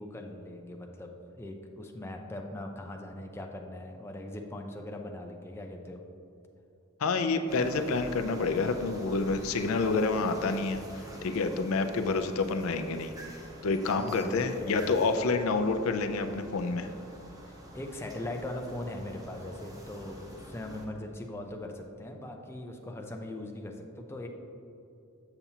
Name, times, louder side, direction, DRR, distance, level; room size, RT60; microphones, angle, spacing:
voice 1, 0.0-6.0 14.0-15.0 17.4-24.3, left 1 dB, 10° left, 2 dB, 0.4 m, -40 dB
voice 2, 7.0-10.8 11.2-13.1 13.6-16.9, left 3 dB, 85° left, 7 dB, 0.4 m, -28 dB
sound 1, 7.5-20.9, right 1 dB, 15° right, 0.8 m, -47 dB
7.1 x 6.8 x 2.8 m, 2.7 s
head